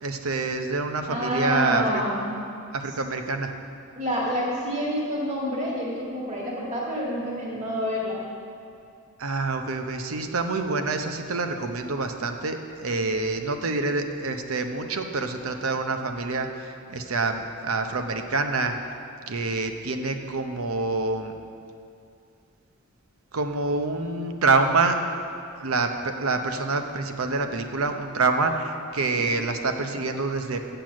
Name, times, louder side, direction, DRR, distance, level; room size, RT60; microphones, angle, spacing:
voice 1, 0.0-2.0 2.7-3.5 9.2-18.7 19.3-21.3 23.3-25.0 25.6-30.8, right 3 dB, 85° right, 6 dB, 0.8 m, -26 dB
voice 2, 1.1-2.3 4.0-8.2 29.1-29.4, equal, 35° right, -4 dB, 1.8 m, -28 dB
7.7 x 6.8 x 7.4 m, 2.4 s
head